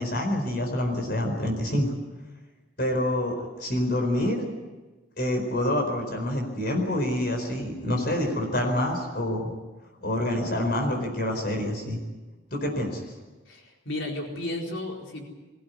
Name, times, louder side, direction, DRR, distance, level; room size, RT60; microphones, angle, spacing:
voice 1, 0.0-1.9 2.8-4.5 5.2-9.5 10.0-12.0 12.5-13.0, left 1 dB, 50° left, 2 dB, 4.5 m, -27 dB
voice 2, 13.5-15.2, left 1 dB, 75° left, 0 dB, 4.5 m, -33 dB
23.0 x 16.0 x 9.6 m, 1.2 s
head